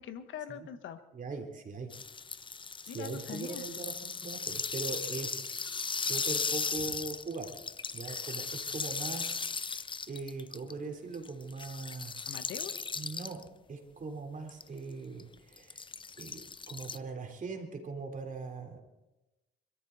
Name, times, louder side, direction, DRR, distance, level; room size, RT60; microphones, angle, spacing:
voice 1, 0.0-1.0 2.9-3.6 12.2-12.8, left 8 dB, 75° left, 10 dB, 1.3 m, -42 dB
voice 2, 1.1-1.9 2.8-7.6 7.9-9.8 10.1-12.3 13.0-13.4 13.7-15.8 16.2-18.8, right 4 dB, 40° right, 3 dB, 3.7 m, -41 dB
sound 1, 1.9-10.7 11.1-13.4 14.5-14.7 15.2-17.0, left 5 dB, 25° left, 0.6 m, -37 dB
25.0 x 13.5 x 4.1 m, 1.0 s
cardioid pair, 90°, 20 cm